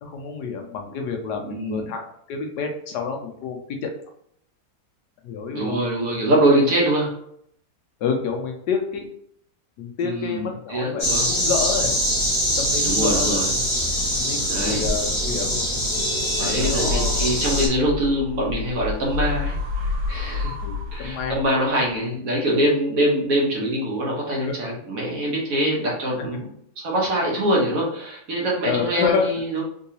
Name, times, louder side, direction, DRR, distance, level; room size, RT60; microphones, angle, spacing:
voice 1, 0.0-3.9 5.2-5.8 8.0-9.1 9.8-12.0 12.6-13.4 14.2-15.7 16.4-17.2 20.6-21.4 24.4-24.5 28.6-29.3, left 5 dB, 75° left, 3 dB, 1.2 m, -28 dB
voice 2, 1.4-1.8 5.5-7.2 10.0-11.3 12.8-13.5 14.5-14.9 16.4-20.5 20.9-26.5 26.8-29.6, right 1 dB, 60° right, -3 dB, 1.3 m, -23 dB
sound 1, 11.0-17.7, equal, 20° left, 0.9 m, -23 dB
sound 2, 16.4-21.7, left 4 dB, 80° right, 1.4 m, -29 dB
3.8 x 2.7 x 2.7 m, 0.68 s
omnidirectional pair, 1.9 m